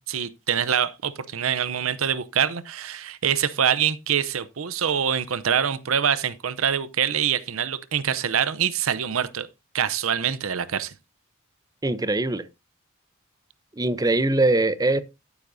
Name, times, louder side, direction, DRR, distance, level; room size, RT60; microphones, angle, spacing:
voice 1, 0.1-9.5 9.7-10.9, right 8 dB, 80° right, 0.7 m, -25 dB
voice 2, 11.8-12.4 13.8-15.0, right 2 dB, 20° right, 0.7 m, -22 dB
14.0 x 8.3 x 2.7 m
head